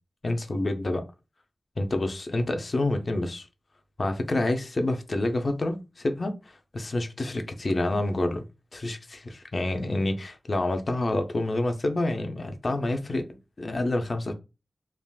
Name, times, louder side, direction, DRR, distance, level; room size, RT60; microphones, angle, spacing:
voice 1, 0.2-1.0 1.8-3.5 4.0-8.4 8.7-13.2 13.6-14.3, left 2 dB, 50° left, 6 dB, 0.5 m, -28 dB
3.4 x 2.4 x 2.2 m, 0.27 s
wide cardioid pair, 95°, 0 cm